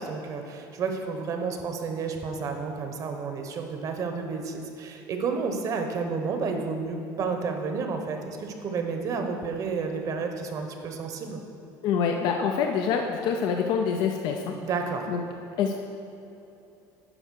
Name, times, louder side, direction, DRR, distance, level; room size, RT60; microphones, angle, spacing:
voice 1, 0.0-11.4 14.6-15.1, right 4 dB, 45° right, 4 dB, 1.1 m, -31 dB
voice 2, 11.8-14.6 15.1-15.2 15.6-15.7, left 6 dB, 65° left, 3 dB, 0.6 m, -26 dB
9.9 x 4.9 x 6.4 m, 2.9 s
cardioid pair, 125°, 8 cm